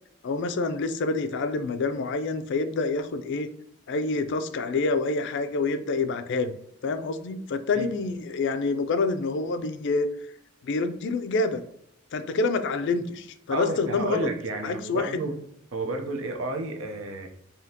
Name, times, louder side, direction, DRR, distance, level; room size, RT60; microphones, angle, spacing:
voice 1, 0.2-3.5 3.9-6.6 6.8-10.1 10.6-11.6 12.1-14.3 14.6-15.2, left 3 dB, 60° left, 10 dB, 0.4 m, -27 dB
voice 2, 13.5-15.4 15.7-17.3, right 2 dB, 80° right, 4 dB, 0.7 m, -31 dB
5.0 x 2.8 x 2.8 m, 0.72 s
head